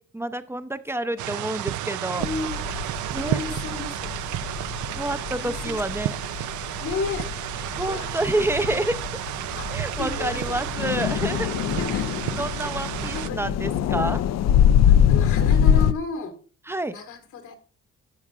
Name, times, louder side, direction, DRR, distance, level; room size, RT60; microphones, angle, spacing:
voice 1, 0.0-2.3 3.1-3.4 4.9-6.2 7.7-9.2 9.7-11.5 12.4-14.2 16.7-17.0, right 1 dB, 10° right, 12 dB, 0.6 m, -28 dB
voice 2, 1.0-1.5 2.2-2.6 3.2-4.5 4.9-5.8 6.8-7.5 7.9-8.1 9.6-10.7 11.8-12.2 13.1-14.2 14.8-16.4 16.9-17.6, left 4 dB, 80° left, 6 dB, 1.9 m, -34 dB
sound 1, 1.2-13.3, right 13 dB, 75° right, 0.5 m, -31 dB
sound 2, 2.2-15.9, left 9 dB, 60° left, 0.5 m, -24 dB
11.5 x 7.2 x 2.4 m, 0.37 s
cardioid pair, 90°, 30 cm